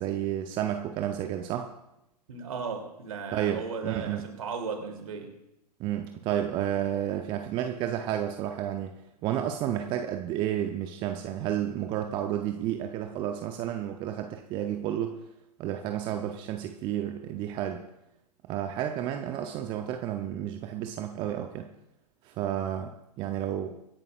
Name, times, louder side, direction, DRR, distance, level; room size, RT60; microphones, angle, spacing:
voice 1, 0.0-1.7 3.3-4.2 5.8-8.9 9.2-15.2 15.6-17.8 18.5-21.7 22.2-23.8, right 11 dB, 25° right, 6 dB, 0.7 m, -31 dB
voice 2, 2.3-5.3, right 5 dB, 55° right, 3 dB, 2.9 m, -36 dB
25.0 x 10.5 x 2.5 m, 0.87 s
figure-of-eight pair, 110°, 21 cm